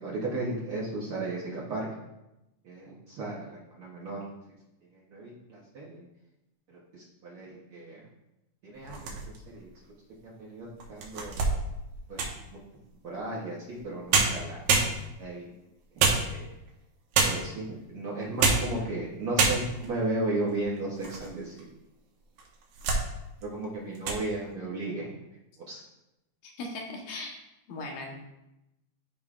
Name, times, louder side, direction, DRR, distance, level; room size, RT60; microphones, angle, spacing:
voice 1, 0.0-1.9 2.6-4.2 4.9-6.0 6.7-8.0 8.6-9.2 9.5-9.7 10.4-11.4 12.1-12.2 13.0-14.6 15.2-15.5 16.2-16.5 17.2-21.6 23.4-25.1 25.7-25.8, right 2 dB, 65° right, -5 dB, 1.4 m, -35 dB
sound 1, 8.8-9.6 10.2-10.3 10.8-12.5 13.8-13.9 14.1-15.3 16.0-16.7 17.1-17.6 18.2-18.8 19.0-19.1 19.4-19.9 20.5-21.3 21.6-21.7 22.4-23.1 23.4-23.6 23.9-24.2, right 4 dB, 85° right, 2.7 m, -27 dB
voice 2, 26.4-27.4 27.7-28.2, left 2 dB, 90° left, 0 dB, 2.7 m, -38 dB
11.5 x 5.1 x 2.4 m, 0.92 s
omnidirectional pair, 3.7 m